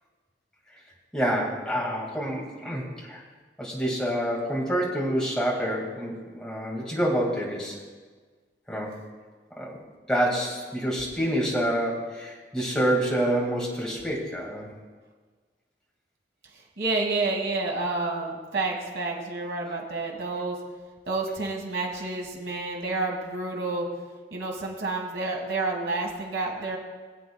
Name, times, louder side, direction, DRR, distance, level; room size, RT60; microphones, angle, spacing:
voice 1, 1.1-3.2 3.6-7.8 8.7-8.9 9.6-9.7 10.1-14.7, right 1 dB, 5° left, -4 dB, 2.1 m, -27 dB
voice 2, 16.5-20.6 21.0-23.9 24.3-26.8, right 3 dB, 90° right, -1 dB, 1.7 m, -29 dB
21.0 x 8.0 x 2.3 m, 1.4 s
head